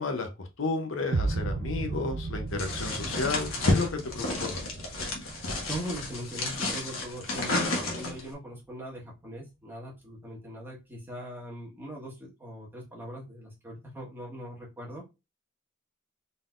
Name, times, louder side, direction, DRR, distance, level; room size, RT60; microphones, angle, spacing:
voice 1, 0.0-4.6, left 3 dB, 70° left, 5 dB, 0.8 m, -32 dB
sound 1, 1.1-7.1, right 3 dB, 65° right, 0.5 m, -35 dB
sound 2, 2.6-8.3, left 2 dB, 85° left, 1.3 m, -31 dB
voice 2, 5.7-15.0, equal, 10° right, -4 dB, 1.5 m, -41 dB
4.0 x 3.7 x 2.5 m, 0.26 s
head